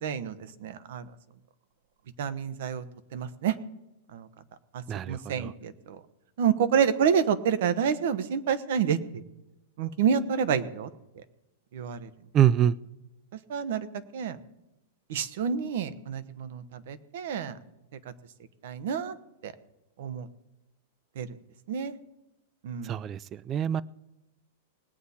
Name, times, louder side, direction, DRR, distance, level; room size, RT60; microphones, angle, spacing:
voice 1, 0.0-1.1 2.2-2.8 3.1-3.6 4.1-4.3 4.7-6.0 6.4-9.2 9.8-10.9 11.7-12.1 13.5-13.9 14.1-14.4 15.1-17.6 18.6-19.2 19.4-19.5 20.0-20.3 21.2-21.3 21.7-22.0 22.6-23.0, right 7 dB, 65° right, 13 dB, 1.1 m, -28 dB
voice 2, 4.9-5.5 12.3-12.8 22.8-23.2 23.5-23.8, right 10 dB, 25° right, 21 dB, 0.3 m, -24 dB
20.0 x 8.1 x 4.3 m, 0.92 s
supercardioid pair, 150°, 0 cm